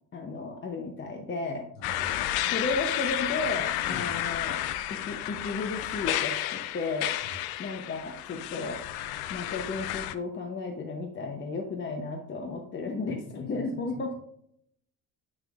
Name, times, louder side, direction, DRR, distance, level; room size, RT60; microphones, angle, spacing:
voice 1, 0.1-1.7 2.5-4.6 4.9-7.1 7.6-8.8 9.3-14.1, left 3 dB, 30° left, 3 dB, 0.8 m, -34 dB
sound 1, 1.8-10.1, left 13 dB, 75° left, 0.5 m, -31 dB
voice 2, 1.8-2.2 3.8-4.1 7.2-7.3 13.1-13.6 13.9-14.0, left 4 dB, 60° left, -2 dB, 2.2 m, -42 dB
6.9 x 6.4 x 2.4 m, 0.72 s
cardioid pair, 95°, 38 cm